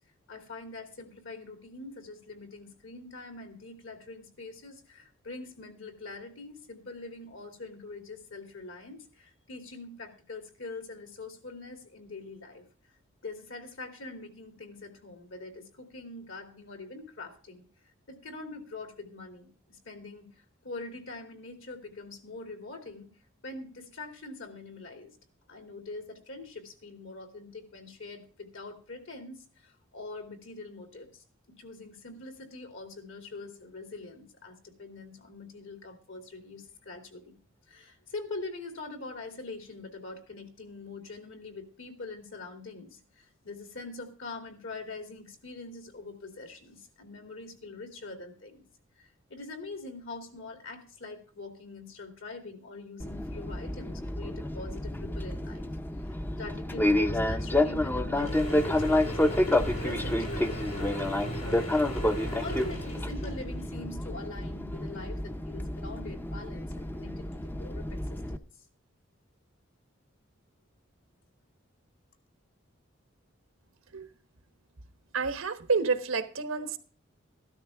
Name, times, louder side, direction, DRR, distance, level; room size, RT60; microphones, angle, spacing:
voice 1, 0.3-12.6 13.2-17.6 18.1-23.1 23.4-25.2 25.5-37.4 37.7-48.6 49.0-55.7 56.4-61.6 62.0-68.5, left 3 dB, 70° left, 2.8 m, -44 dB
Fixed-wing aircraft airplane, 53.0-68.4, left 1 dB, 10° left, 0.5 m, -29 dB
Mechanisms / Drill, 58.2-63.7, equal, 85° left, 6.8 m, -38 dB
voice 2, 75.1-76.8, right 4 dB, 90° right, 1.2 m, -29 dB
14.0 x 12.5 x 3.5 m
head